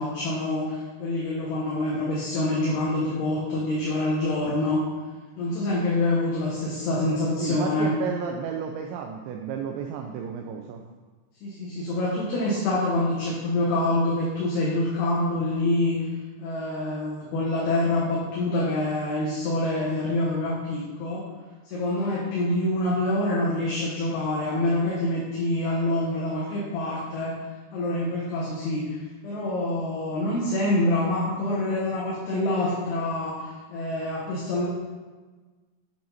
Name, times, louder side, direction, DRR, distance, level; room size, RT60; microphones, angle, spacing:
voice 1, 0.0-4.8 5.4-8.0 11.4-16.0 16.4-21.2 21.7-27.4 27.7-34.7, left 1 dB, 65° left, -6 dB, 3.0 m, -26 dB
voice 2, 7.4-10.8, right 7 dB, 85° right, 3 dB, 2.6 m, -32 dB
8.8 x 7.7 x 4.1 m, 1.3 s
omnidirectional pair, 5.7 m